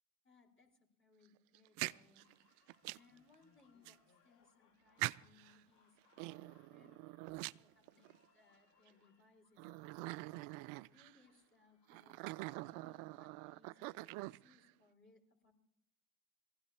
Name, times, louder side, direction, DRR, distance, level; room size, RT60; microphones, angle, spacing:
voice 1, 0.2-2.6 2.9-4.0 4.2-9.7 10.6-15.5, left 4 dB, 25° left, -2 dB, 4.5 m, -69 dB
sound 1, 1.5-3.2 3.9-4.0 5.0-5.6 6.1-8.2 8.9-9.0 9.6-11.2 11.9-14.7, right 21 dB, 65° right, 0.5 m, -44 dB
sound 2, 2.2-14.1, left 6 dB, 85° left, 2.2 m, -75 dB
22.5 x 16.0 x 2.9 m, 0.77 s
hypercardioid pair, 65°, 48 cm